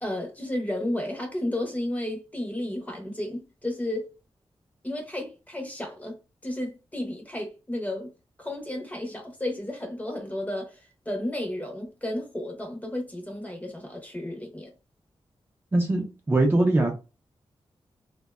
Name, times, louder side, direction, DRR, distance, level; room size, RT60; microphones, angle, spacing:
voice 1, 0.0-4.1 4.8-6.2 6.4-8.1 8.4-14.7, left 1 dB, 15° left, 0.7 m, -32 dB
voice 2, 15.7-17.0, right 2 dB, 20° right, 0.5 m, -22 dB
2.5 x 2.1 x 2.3 m
wide cardioid pair, 90°, 10 cm